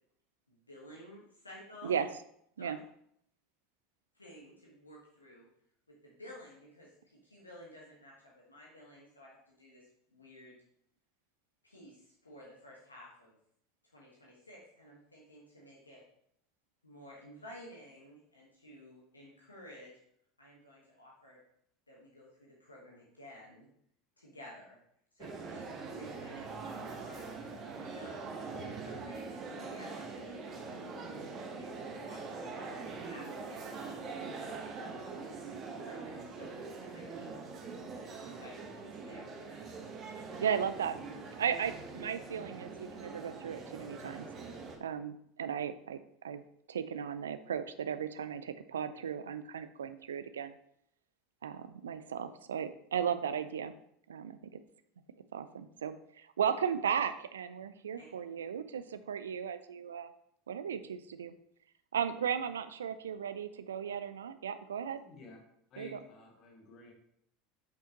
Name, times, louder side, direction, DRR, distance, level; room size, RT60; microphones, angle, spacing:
voice 1, 0.5-1.9 2.6-2.8 4.1-5.4 5.9-10.6 11.6-13.4 13.8-16.0 16.8-19.9 20.4-21.4 21.9-23.7 24.2-24.8 25.1-27.2 27.8-30.8 31.5-35.4 35.8-37.3 38.1-39.7 57.9-58.1, equal, 90° left, -5 dB, 1.4 m, -54 dB
sound 1, 25.2-44.8, right 4 dB, 40° right, 1.1 m, -43 dB
voice 2, 40.4-41.0 41.4-44.3 44.8-46.0 46.2-46.4 46.7-50.5 51.4-53.7 54.1-54.4 55.3-60.1 60.5-61.3 61.9-65.0 65.8-66.0, right 8 dB, 75° right, 12 dB, 0.4 m, -36 dB
voice 3, 65.0-65.4 65.7-66.9, left 3 dB, 45° left, 2 dB, 1.7 m, -53 dB
6.8 x 5.6 x 3.0 m, 0.71 s
figure-of-eight pair, 75°, 0 cm